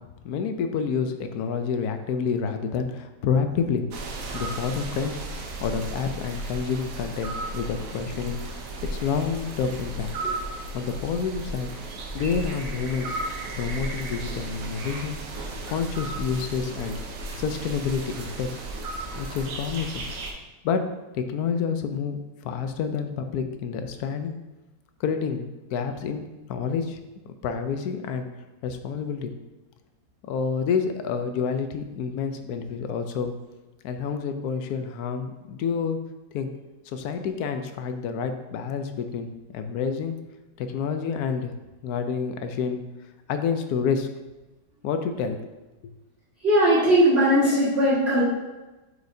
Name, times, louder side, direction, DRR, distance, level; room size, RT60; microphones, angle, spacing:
voice 1, 0.2-3.8 4.3-8.4 8.9-10.1 10.7-11.7 12.1-13.2 13.6-15.2 15.7-17.0 17.4-18.5 19.2-20.1 20.6-20.8 21.1-24.3 25.0-27.0 27.4-28.3 28.6-29.3 30.3-33.3 33.8-36.0 36.3-36.5 36.9-40.2 40.6-41.5 41.8-42.8 43.3-44.1 44.8-45.5, left 6 dB, 70° left, 7 dB, 1.0 m, -28 dB
sound 1, 3.9-20.3, right 2 dB, 60° right, 1.1 m, -34 dB
voice 2, 46.4-48.2, equal, 40° right, -12 dB, 1.8 m, -19 dB
8.2 x 4.9 x 2.7 m, 1.1 s
omnidirectional pair, 1.8 m